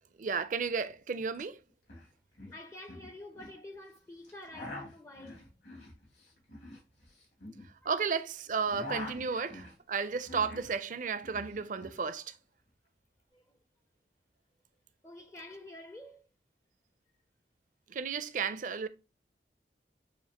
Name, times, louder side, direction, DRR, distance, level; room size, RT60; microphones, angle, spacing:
voice 1, 0.2-1.6 7.9-12.3 17.9-18.9, right 5 dB, 45° right, 0.4 m, -33 dB
sound 1, 1.3-1.4 1.7-2.1 2.3-3.6 4.2-8.2 8.5-10.7 11.0-12.0, left 2 dB, 75° left, 2.5 m, -45 dB
voice 2, 2.3-5.5 7.8-8.2 8.9-9.5 13.3-13.5 15.0-16.3, left 1 dB, 15° left, 0.4 m, -49 dB
7.0 x 2.5 x 2.8 m
head